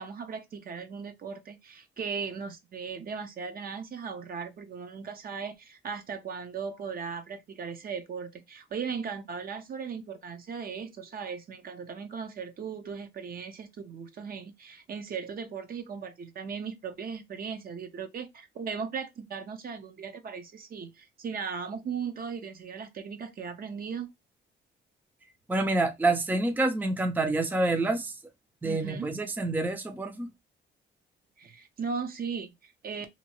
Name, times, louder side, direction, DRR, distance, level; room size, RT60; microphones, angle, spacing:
voice 1, 0.0-24.1 28.6-29.1 31.4-33.1, right 6 dB, 50° right, 0.7 m, -37 dB
voice 2, 25.5-28.1 28.6-30.3, right 2 dB, 10° right, 0.5 m, -27 dB
2.8 x 2.2 x 2.8 m
cardioid pair, 90°, 20 cm